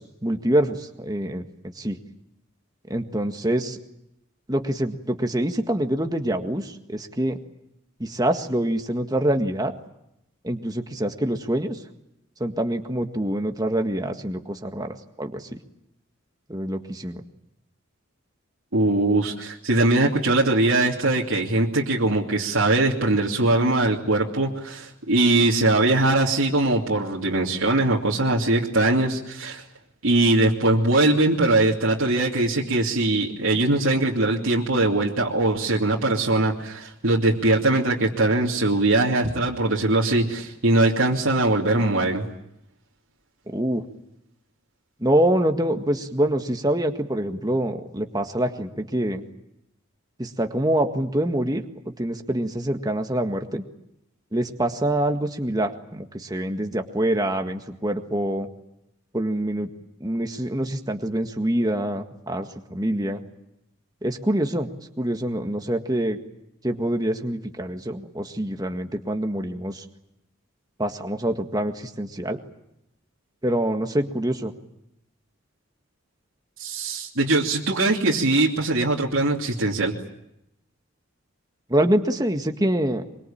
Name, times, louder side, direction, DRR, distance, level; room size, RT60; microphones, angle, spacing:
voice 1, 0.0-1.4 1.7-2.0 2.9-3.8 4.5-7.4 8.0-9.7 10.4-11.8 12.4-15.6 16.5-17.2 43.5-43.8 45.0-49.2 50.2-51.6 52.0-53.6 54.3-58.5 59.1-59.7 60.0-63.2 64.0-64.7 65.0-66.2 66.6-69.8 70.8-72.4 73.4-74.5 81.7-83.0, right 1 dB, 20° right, 5 dB, 1.7 m, -25 dB
voice 2, 18.7-29.6 30.0-42.3 76.6-80.0, right 2 dB, 80° right, -3 dB, 2.9 m, -21 dB
24.5 x 23.5 x 8.8 m, 0.82 s
head